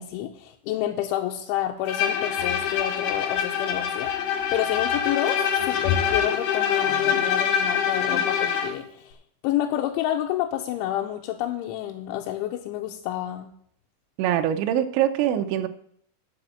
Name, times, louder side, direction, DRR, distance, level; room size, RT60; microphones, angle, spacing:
voice 1, 0.0-9.2 9.4-13.5, left 12 dB, 90° left, 2 dB, 3.2 m, -29 dB
Bowed string instrument, 1.9-8.8, left 8 dB, 70° left, 2.9 m, -25 dB
voice 2, 14.2-15.7, right 11 dB, 80° right, 7 dB, 3.0 m, -23 dB
10.5 x 6.0 x 8.2 m, 0.65 s
omnidirectional pair, 5.4 m